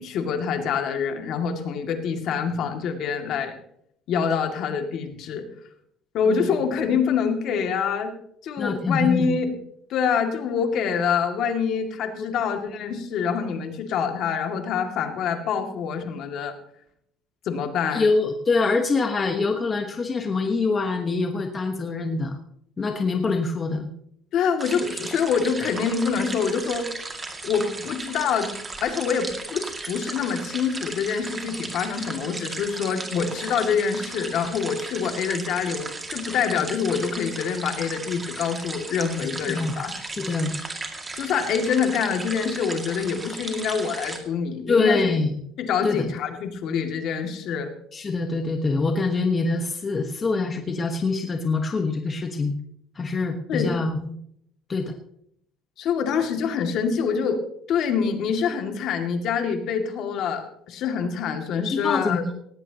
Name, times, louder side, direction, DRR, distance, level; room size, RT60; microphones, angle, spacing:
voice 1, 0.0-3.5 4.1-5.5 6.1-8.1 8.4-9.5 9.9-16.5 17.5-18.1 24.3-26.9 27.4-28.5 28.8-39.9 41.1-45.0 45.6-47.7 53.5-53.7 55.8-57.4 57.7-62.2, left 6 dB, 55° left, 4 dB, 2.3 m, -25 dB
voice 2, 8.6-9.3 12.1-12.3 17.9-22.4 22.8-23.9 39.2-39.8 40.2-40.6 44.7-45.3 45.8-46.1 47.9-52.5 52.9-54.2 54.7-54.9 61.6-62.3, left 3 dB, 25° left, 4 dB, 1.3 m, -24 dB
sound 1, 24.6-44.2, right 3 dB, 20° right, 2.2 m, -36 dB
18.0 x 17.5 x 2.9 m, 0.71 s
cardioid pair, 140°, 0 cm